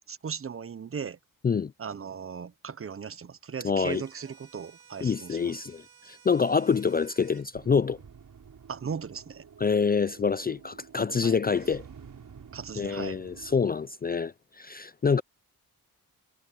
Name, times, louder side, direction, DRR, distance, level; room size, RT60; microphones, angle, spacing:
voice 1, 0.1-1.2 1.8-5.6 8.7-9.4 11.2-11.4 12.5-13.2, right 6 dB, 40° right, 0.8 m, -37 dB
voice 2, 3.6-4.0 5.0-8.0 9.6-11.8 12.8-15.2, left 5 dB, 25° left, 0.4 m, -26 dB
sound 1, 3.9-7.5, right 7 dB, 80° right, 1.4 m, -56 dB
sound 2, 7.5-13.7, right 7 dB, 60° right, 6.7 m, -50 dB
wide cardioid pair, 105°, 36 cm